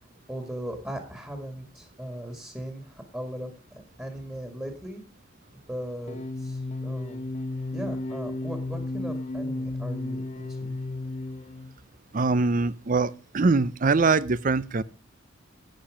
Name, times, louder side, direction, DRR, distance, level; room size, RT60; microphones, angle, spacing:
voice 1, 0.3-5.0 5.7-7.2 7.7-10.8, right 1 dB, 10° right, 4 dB, 2.0 m, -38 dB
sound 1, 6.1-11.8, left 2 dB, 35° left, 0.6 m, -33 dB
voice 2, 12.1-14.8, right 3 dB, 40° right, 18 dB, 0.5 m, -23 dB
11.5 x 8.5 x 5.0 m, 0.33 s
head